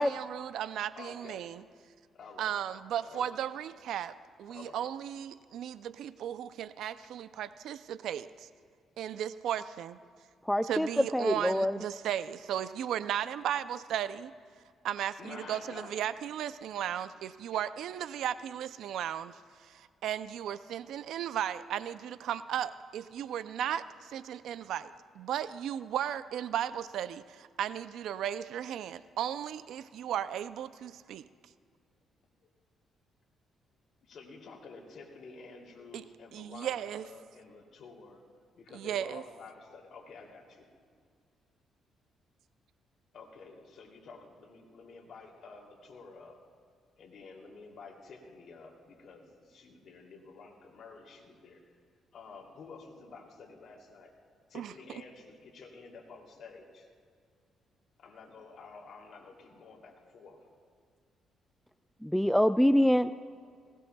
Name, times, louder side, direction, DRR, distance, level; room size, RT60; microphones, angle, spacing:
voice 1, 0.0-1.6 2.4-4.1 4.4-8.5 9.0-10.0 10.6-14.3 14.8-31.2 35.9-36.0 36.3-37.1 38.7-39.2 54.5-54.7, right 10 dB, 80° right, 14 dB, 0.4 m, -35 dB
voice 2, 1.0-1.5 2.2-2.5 3.1-3.3 4.5-4.8 15.2-16.0 34.1-38.2 38.6-40.6 43.1-46.4 47.0-51.6 52.1-54.1 54.5-56.9 58.0-60.4, left 4 dB, 60° left, 0 dB, 2.8 m, -50 dB
voice 3, 10.5-11.8 62.0-63.1, equal, ahead, 11 dB, 0.3 m, -25 dB
20.0 x 18.5 x 2.3 m, 2.1 s
cardioid pair, 90°, 0 cm